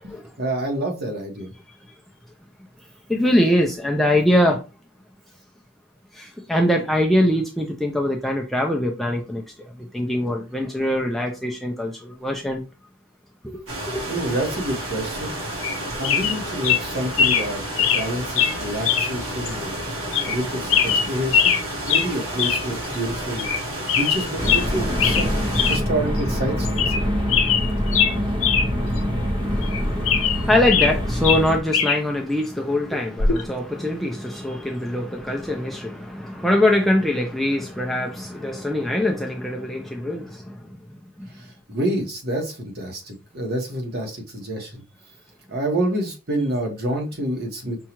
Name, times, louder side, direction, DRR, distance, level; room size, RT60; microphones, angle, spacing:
voice 1, 0.4-1.5 14.1-15.4 16.0-19.7 20.2-23.4 23.9-27.0 41.4-44.8 45.5-47.8, right 1 dB, 50° right, 1.1 m, -28 dB
voice 2, 3.1-4.6 6.2-9.4 9.9-12.6 13.4-13.6 13.9-14.0 29.4-40.6 41.2-41.3, left 1 dB, ahead, 0.4 m, -23 dB
sound 1, 13.7-25.8, right 1 dB, 85° right, 1.8 m, -31 dB
sound 2, 15.6-15.8 16.0-16.4 16.6-16.8 17.2-17.5 17.8-18.0 18.4-18.5 18.8-19.1 19.4-19.5 20.1-20.4 20.7-21.6 21.9-22.1 22.4-22.6 22.9-23.0 23.4-23.6 23.9-24.6 25.0-25.3 25.5-25.8 26.2-26.3 26.6-27.0 27.3-28.7 29.0-29.1 29.6-30.9 31.2-32.0 33.2-33.4, left 7 dB, 70° left, 0.7 m, -21 dB
sound 3, 24.4-31.6, equal, 25° right, 0.7 m, -24 dB
5.4 x 2.4 x 3.0 m
head